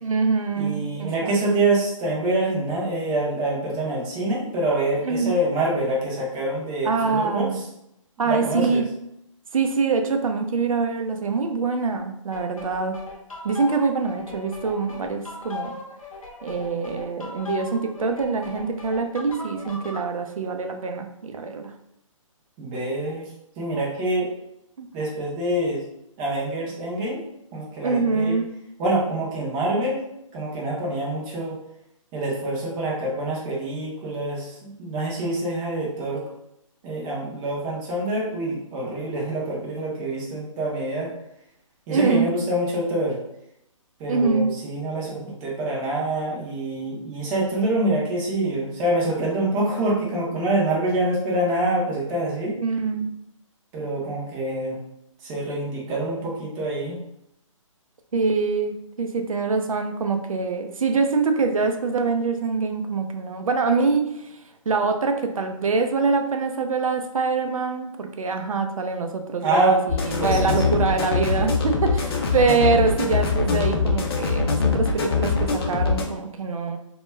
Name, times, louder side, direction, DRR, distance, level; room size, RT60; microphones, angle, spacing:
voice 1, 0.0-1.3 5.0-5.4 6.8-7.6 8.2-8.9 9.5-13.0 13.4-15.8 16.4-21.7 24.8-24.9 27.8-28.5 41.9-42.3 44.1-44.5 52.6-53.1 58.1-64.4 64.7-69.8 70.1-76.8, right 4 dB, 90° right, 5 dB, 0.4 m, -24 dB
voice 2, 0.6-7.5 8.2-8.8 22.6-23.3 23.6-24.3 24.9-25.8 26.2-27.2 27.5-28.4 28.8-30.0 30.3-31.6 32.1-36.2 36.8-41.1 41.9-43.2 44.0-52.6 53.7-54.8 55.2-57.0 69.4-69.8 70.2-70.9, right 1 dB, 15° right, -4 dB, 0.4 m, -26 dB
sound 1, 12.3-20.1, left 4 dB, 85° left, 0.7 m, -39 dB
sound 2, 69.9-76.0, left 4 dB, 45° left, 0.5 m, -23 dB
2.2 x 2.1 x 3.2 m, 0.79 s
hypercardioid pair, 145°, 17 cm